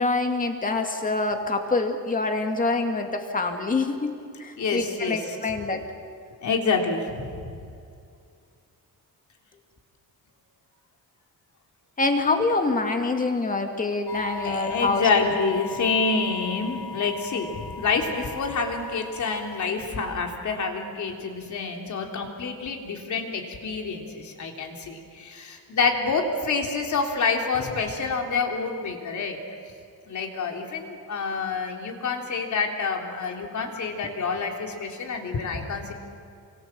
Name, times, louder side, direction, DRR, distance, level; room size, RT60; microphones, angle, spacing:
voice 1, 0.0-4.1 4.4-5.8 12.0-15.3, left 3 dB, 20° left, 4 dB, 2.3 m, -25 dB
voice 2, 4.6-5.4 6.4-7.5 14.4-29.4 30.1-35.9, left 4 dB, 55° left, 2 dB, 3.6 m, -27 dB
sound 1, 14.1-19.7, left 4 dB, 80° left, 2.0 m, -38 dB
29.0 x 24.5 x 7.7 m, 2.3 s
wide cardioid pair, 175°, 36 cm